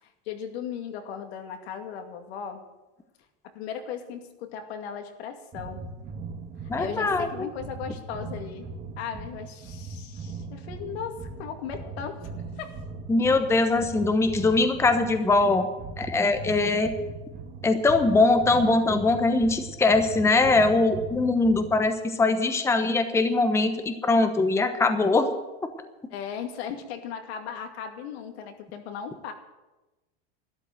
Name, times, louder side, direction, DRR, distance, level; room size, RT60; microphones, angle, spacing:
voice 1, 0.0-2.6 3.5-5.8 6.8-8.7 9.0-12.8 26.1-29.3, left 7 dB, 70° left, 5 dB, 2.4 m, -37 dB
sound 1, 5.5-21.9, right 4 dB, 25° right, 1.6 m, -40 dB
voice 2, 6.7-7.5 13.1-15.7 16.0-16.9 17.6-25.3, left 3 dB, 10° left, 7 dB, 1.0 m, -22 dB
12.5 x 11.5 x 7.7 m, 1.1 s
supercardioid pair, 135°, 33 cm